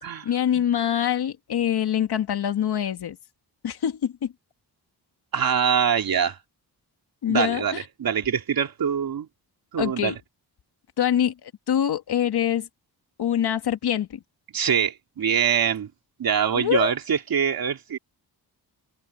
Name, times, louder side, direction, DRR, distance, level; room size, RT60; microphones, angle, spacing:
voice 1, 0.2-3.2 3.6-4.3 7.2-7.8 9.8-10.1 11.0-12.7 13.2-14.2 16.5-16.9, left 9 dB, 75° left, 1.8 m, -24 dB
voice 2, 5.3-6.4 7.2-9.3 9.7-10.1 14.5-15.9 16.2-18.0, right 8 dB, 60° right, 3.2 m, -24 dB
wide cardioid pair, 155°, 39 cm